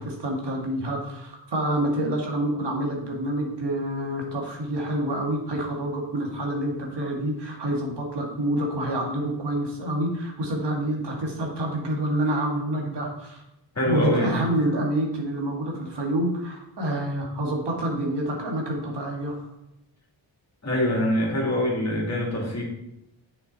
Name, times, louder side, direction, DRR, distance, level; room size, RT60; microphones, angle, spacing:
voice 1, 0.0-13.4 13.9-19.4, right 1 dB, 60° right, 0 dB, 2.1 m, -27 dB
voice 2, 13.7-14.3 20.6-22.6, equal, 35° left, -2 dB, 3.0 m, -24 dB
7.6 x 6.2 x 4.1 m, 0.86 s
cardioid pair, 70°, 48 cm